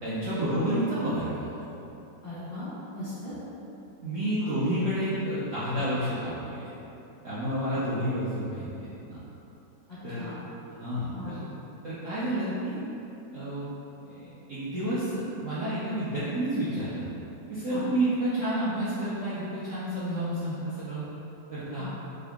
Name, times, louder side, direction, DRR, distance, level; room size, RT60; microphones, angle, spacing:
voice 1, 0.0-1.7 4.0-6.7 7.2-8.7 9.1-9.2 10.0-10.4 10.8-11.4 11.8-12.8 13.3-13.7 14.0-17.1 17.5-21.0 21.5-21.9, right 1 dB, 70° right, -11 dB, 0.7 m, -30 dB
voice 2, 2.2-3.3 4.4-4.6 7.7-7.8 9.9-10.4 11.1-11.4 17.7-17.8 21.8-21.9, left 1 dB, 35° left, -12 dB, 0.6 m, -39 dB
3.8 x 2.4 x 3.4 m, 3.0 s
omnidirectional pair, 2.1 m